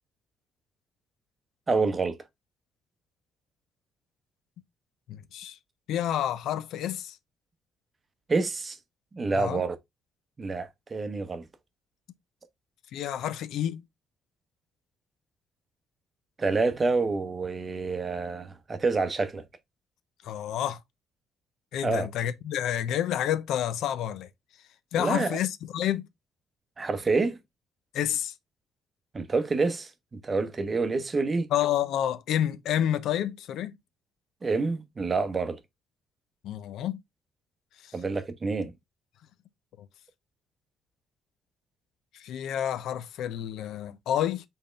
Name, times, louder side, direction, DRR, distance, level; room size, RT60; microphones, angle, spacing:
voice 1, 1.7-2.2 8.3-8.8 9.1-9.8 10.4-11.5 16.4-19.4 21.8-22.1 24.9-25.4 26.8-27.4 29.1-31.5 34.4-35.6 37.9-38.7, right 3 dB, 25° right, 0.7 m, -27 dB
voice 2, 5.1-5.6 5.9-7.2 9.3-9.6 12.9-13.8 20.2-20.8 21.7-24.3 24.9-26.1 27.9-28.3 31.5-33.7 36.4-37.0 42.2-44.4, left 11 dB, 75° left, 0.5 m, -29 dB
4.4 x 3.5 x 3.2 m
cardioid pair, 135°, 0 cm